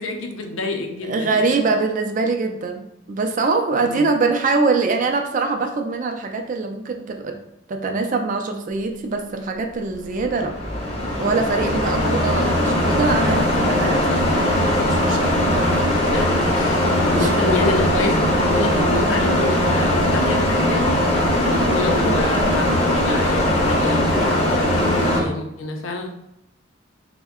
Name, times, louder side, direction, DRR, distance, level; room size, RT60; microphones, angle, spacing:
voice 1, 0.0-1.6 3.7-4.1 15.9-21.0 21.3-26.1, left 2 dB, 80° left, 4 dB, 0.5 m, -28 dB
voice 2, 1.0-7.4 7.7-10.5 11.2-14.3 14.6-15.6 17.1-17.3 21.9-22.5, right 3 dB, 40° right, 4 dB, 0.4 m, -23 dB
sound 1, 10.1-25.2, left 1 dB, 30° left, 0.7 m, -20 dB
3.5 x 2.1 x 3.5 m, 0.81 s
head